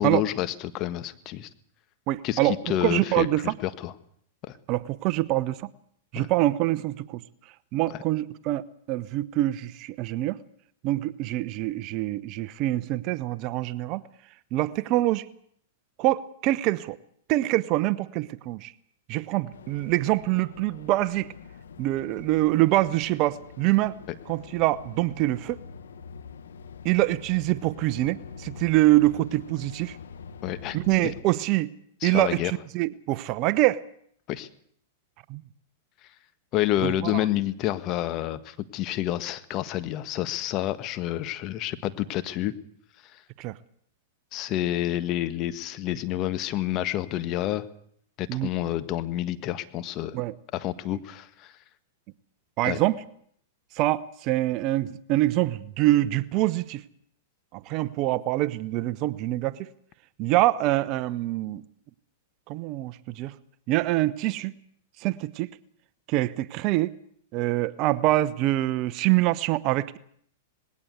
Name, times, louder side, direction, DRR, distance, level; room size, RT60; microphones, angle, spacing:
voice 1, 0.0-1.5 2.2-3.9 4.4-4.5 6.1-6.3 7.9-8.0 30.4-31.1 32.0-32.5 34.3-34.5 36.5-42.5 44.3-47.7 48.2-50.2 50.5-51.5 52.6-52.8, left 13 dB, 40° left, 12 dB, 1.5 m, -29 dB
voice 2, 2.1-3.5 4.7-5.7 6.1-7.2 7.7-10.4 10.8-14.0 14.5-15.2 16.0-17.0 17.3-18.7 19.1-21.3 21.8-24.0 24.3-25.6 26.8-30.0 30.7-31.7 32.0-33.8 35.3-35.4 36.8-37.2 43.4-43.5 48.3-48.5 50.1-50.3 52.6-53.0 53.8-56.8 57.5-59.7 60.2-61.6 62.5-63.3 63.7-64.5 65.0-65.5 66.1-66.9 67.3-70.0, right 17 dB, 45° right, 15 dB, 0.9 m, -25 dB
sound 1, 19.5-31.2, left 6 dB, 85° left, 1.6 m, -45 dB
20.0 x 17.0 x 8.2 m, 0.65 s
hypercardioid pair, 115°, 0 cm